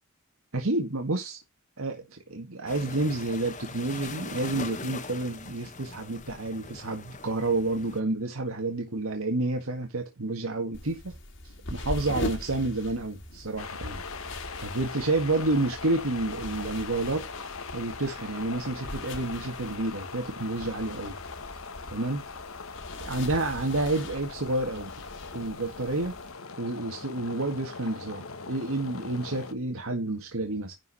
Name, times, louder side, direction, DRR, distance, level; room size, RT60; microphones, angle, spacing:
voice 1, 0.5-1.4 1.8-11.1 11.4-14.0 14.6-17.3 17.7-21.2 21.9-22.2 23.0-24.9 25.3-26.1 26.6-30.7, right 2 dB, 90° right, 1.8 m, -29 dB
sound 1, 2.7-8.0, left 4 dB, 35° left, 1.3 m, -41 dB
sound 2, 10.7-26.3, left 1 dB, 60° left, 2.2 m, -41 dB
sound 3, 13.6-29.5, left 4 dB, 90° left, 1.4 m, -41 dB
11.0 x 4.8 x 5.5 m
head